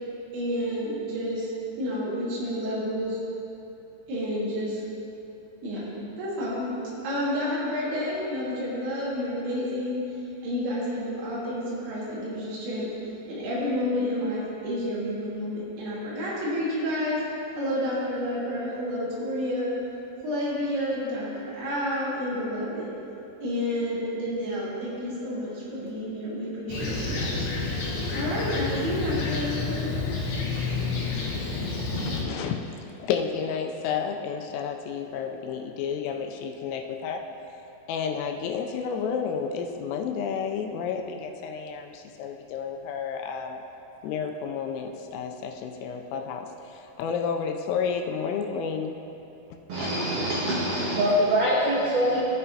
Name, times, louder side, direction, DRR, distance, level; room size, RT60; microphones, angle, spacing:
voice 1, 0.3-1.5 1.8-3.2 4.1-4.8 5.6-6.7 7.0-10.0 10.4-12.9 13.3-17.2 17.6-19.7 20.2-22.9 23.4-27.4 28.1-29.9, equal, 65° right, -7 dB, 3.9 m, -30 dB
Fixed-wing aircraft airplane, 26.7-32.2, left 3 dB, 65° left, 2.7 m, -29 dB
voice 2, 32.0-32.6 33.0-37.2 37.9-43.6 44.0-48.9, left 6 dB, 85° left, 4 dB, 3.1 m, -31 dB
voice 3, 49.7-52.2, equal, 85° right, -6 dB, 2.1 m, -24 dB
15.0 x 7.7 x 2.7 m, 2.9 s
omnidirectional pair, 6.0 m